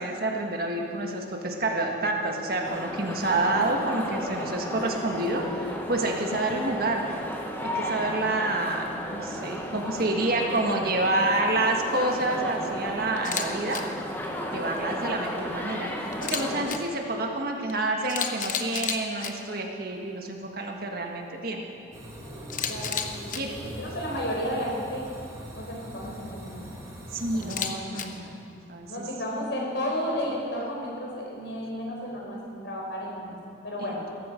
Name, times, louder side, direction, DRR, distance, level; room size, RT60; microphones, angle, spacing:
voice 1, 0.0-7.2 7.6-13.8 14.5-21.7 23.3-23.5 27.1-27.6 27.9-28.4 28.7-29.0, right 2 dB, 50° right, 2 dB, 1.6 m, -28 dB
sound 1, 2.6-16.8, equal, 10° left, 1.3 m, -34 dB
Camera, 13.2-13.5 13.7-13.8 16.1-16.8 17.7-17.8 18.1-19.3 22.5-23.4 27.4-28.0, left 8 dB, 45° left, 1.0 m, -31 dB
sound 2, 21.9-27.7, equal, 15° right, 1.9 m, -42 dB
voice 2, 22.7-25.0 25.5-26.7 27.3-28.1 28.9-33.3 33.6-34.0, equal, 70° left, -2 dB, 4.4 m, -33 dB
17.5 x 14.5 x 5.2 m, 2.5 s
head